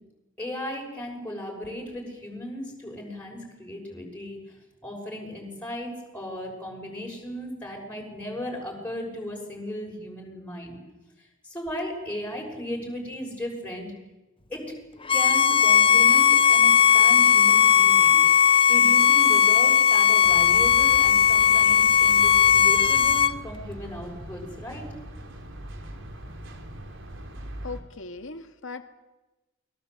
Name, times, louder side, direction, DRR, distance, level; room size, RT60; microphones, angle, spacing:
voice 1, 0.4-4.4 4.8-10.8 11.2-13.9 14.5-14.6 15.1-18.2 18.7-24.9, equal, 5° left, -2 dB, 6.7 m, -36 dB
Bowed string instrument, 15.1-23.3, left 8 dB, 25° left, 0.8 m, -18 dB
sound 1, 20.2-27.8, right 1 dB, 65° right, 3.6 m, -41 dB
voice 2, 27.6-28.8, left 3 dB, 70° left, 7 dB, 2.2 m, -38 dB
28.5 x 22.0 x 8.2 m, 1.1 s
head